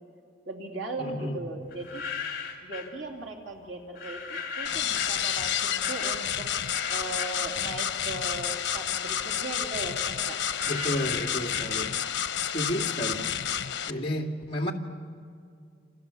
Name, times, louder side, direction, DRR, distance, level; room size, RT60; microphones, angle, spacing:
voice 1, 0.5-2.0 2.6-6.5 6.9-10.4, right 2 dB, 80° right, 1 dB, 2.8 m, -38 dB
voice 2, 1.0-1.4 10.7-11.9 12.5-13.5 13.9-14.7, equal, 30° left, -2 dB, 2.5 m, -32 dB
sound 1, 1.7-3.0 3.9-8.2 8.5-12.3, left 6 dB, 50° left, 3.2 m, -38 dB
sound 2, 4.6-13.9, left 9 dB, 75° left, 1.0 m, -30 dB
28.5 x 28.5 x 7.1 m, 2.3 s
head